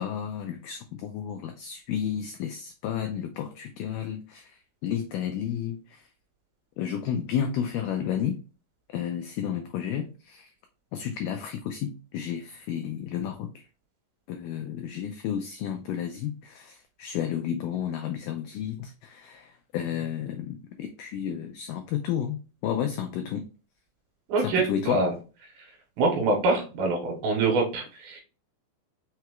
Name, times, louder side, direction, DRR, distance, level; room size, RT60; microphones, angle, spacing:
voice 1, 0.0-6.0 6.8-8.4 8.9-10.5 10.9-13.6 14.3-23.5 24.4-25.0, left 9 dB, 85° left, 1.9 m, -32 dB
voice 2, 24.3-25.1 26.0-28.2, right 3 dB, 80° right, 2.5 m, -25 dB
5.6 x 2.9 x 2.2 m
omnidirectional pair, 4.3 m